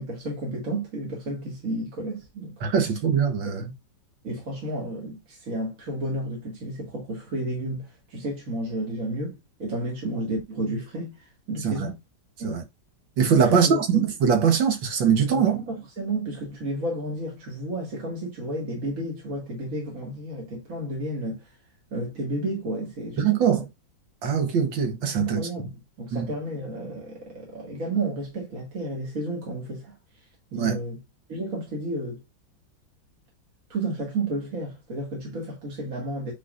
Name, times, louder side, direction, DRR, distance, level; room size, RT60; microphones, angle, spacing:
voice 1, 0.0-2.6 3.4-3.7 4.2-12.0 12.4-12.6 13.5-14.0 15.3-21.5 21.9-23.6 25.2-29.9 30.5-31.0 31.3-32.2 33.7-36.3, right 1 dB, 45° right, 2.4 m, -32 dB
voice 2, 2.6-3.7 11.6-11.9 12.4-12.6 13.2-15.6 23.2-23.7 24.2-25.4 26.1-26.3 30.5-30.8, right 7 dB, 80° right, 2.0 m, -22 dB
9.0 x 4.1 x 2.5 m
omnidirectional pair, 2.0 m